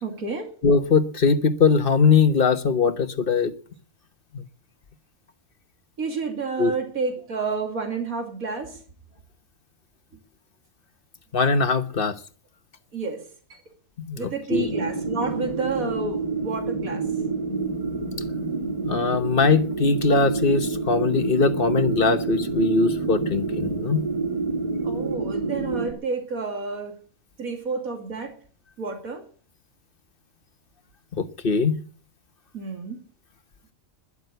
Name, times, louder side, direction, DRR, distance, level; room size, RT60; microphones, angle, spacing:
voice 1, 0.0-0.5 6.0-8.8 12.9-13.2 13.5-13.6 14.2-17.0 24.8-26.9 27.4-28.3 28.8-29.2 32.5-33.0, right 4 dB, 85° right, 4 dB, 3.0 m, -30 dB
voice 2, 0.6-3.5 4.3-4.4 6.6-6.7 11.3-12.1 14.0-14.7 18.8-24.0 31.2-31.8, left 4 dB, 45° left, 11 dB, 1.1 m, -21 dB
sound 1, 14.5-25.9, right 3 dB, 25° right, 3.7 m, -28 dB
12.0 x 11.0 x 8.0 m, 0.43 s
omnidirectional pair, 1.4 m